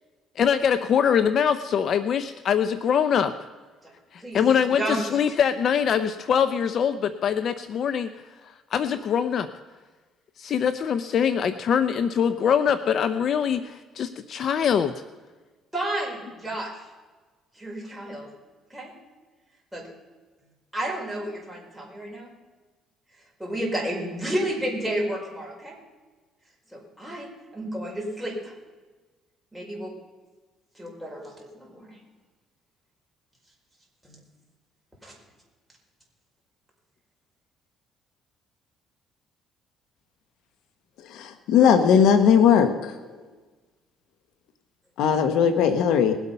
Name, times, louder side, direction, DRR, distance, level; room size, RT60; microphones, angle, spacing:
voice 1, 0.4-3.3 4.1-9.5 10.4-15.0, left 7 dB, 55° left, 12 dB, 0.6 m, -23 dB
voice 2, 4.8-5.2 15.7-16.7 17.5-18.3 18.7-18.9 19.7-19.9 20.7-22.3 23.4-25.8 26.7-28.5 29.5-29.9 30.7-32.0 34.0-34.2 35.0-35.1, right 1 dB, ahead, -2 dB, 4.9 m, -31 dB
voice 3, 41.1-42.9 45.0-46.1, left 7 dB, 75° left, 8 dB, 1.1 m, -18 dB
20.0 x 8.3 x 5.6 m, 1.3 s
cardioid pair, 100°, 0 cm